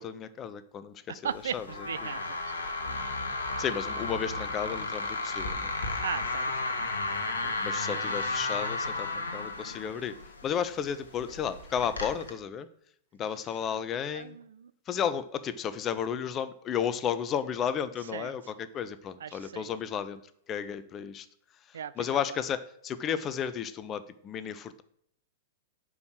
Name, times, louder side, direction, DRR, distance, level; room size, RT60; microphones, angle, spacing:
voice 1, 0.0-1.0 1.5-1.6 3.6-5.7 7.6-10.1 10.4-12.7 13.2-14.4 14.9-20.2 20.5-21.3 22.0-24.8, left 8 dB, 25° left, 14 dB, 0.5 m, -33 dB
voice 2, 1.1-2.6 2.8-3.0 3.3-3.4 6.0-6.8 7.1-7.6 7.9-8.3 13.5-13.6 14.1-14.7 18.0-18.5 19.2-19.7 21.7-22.4, right 8 dB, 65° right, 16 dB, 0.3 m, -39 dB
sound 1, 1.3-12.3, left 3 dB, 75° left, 1.0 m, -34 dB
5.2 x 4.7 x 6.0 m, 0.70 s
figure-of-eight pair, 100°, 0 cm